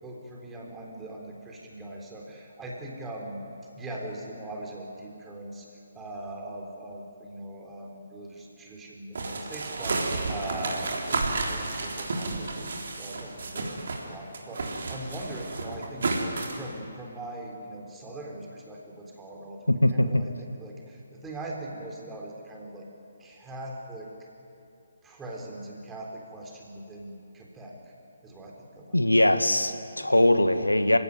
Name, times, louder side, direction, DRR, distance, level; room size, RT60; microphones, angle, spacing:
voice 1, 0.0-3.4 3.8-5.7 5.9-16.1 16.5-22.9 23.2-24.3 25.0-27.8 28.2-29.4 29.9-30.1, right 1 dB, 10° right, -1 dB, 3.6 m, -41 dB
sound 1, 9.1-14.1 14.3-16.6, right 3 dB, 50° right, 3.7 m, -31 dB
voice 2, 19.8-20.2 28.9-31.0, left 1 dB, 80° left, 10 dB, 1.4 m, -21 dB
27.5 x 16.5 x 9.6 m, 2.8 s
figure-of-eight pair, 140°, 0 cm